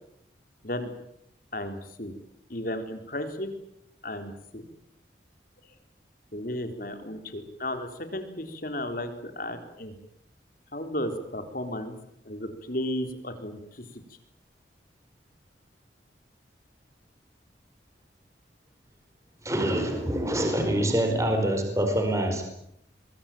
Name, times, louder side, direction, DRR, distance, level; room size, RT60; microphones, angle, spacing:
voice 1, 1.5-2.1 2.5-3.5 4.0-4.6 6.3-9.9 10.7-12.0 12.3-13.9, left 1 dB, 50° left, 8 dB, 3.8 m, -34 dB
voice 2, 19.4-22.4, right 1 dB, 15° right, 4 dB, 4.7 m, -25 dB
23.5 x 22.0 x 9.1 m, 0.76 s
head